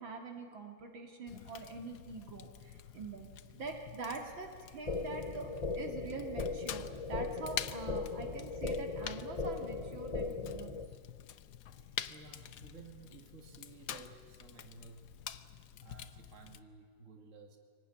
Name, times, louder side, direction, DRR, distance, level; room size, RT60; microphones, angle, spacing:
voice 1, 0.0-10.8, right 4 dB, 75° right, 3 dB, 3.0 m, -45 dB
Fire, 1.3-16.6, left 10 dB, 65° left, 1.2 m, -47 dB
sound 1, 4.9-10.9, left 3 dB, 40° left, 0.5 m, -38 dB
voice 2, 11.6-15.1 15.7-17.6, right 4 dB, 40° right, 4 dB, 2.4 m, -55 dB
24.0 x 18.5 x 9.9 m, 2.1 s
omnidirectional pair, 2.2 m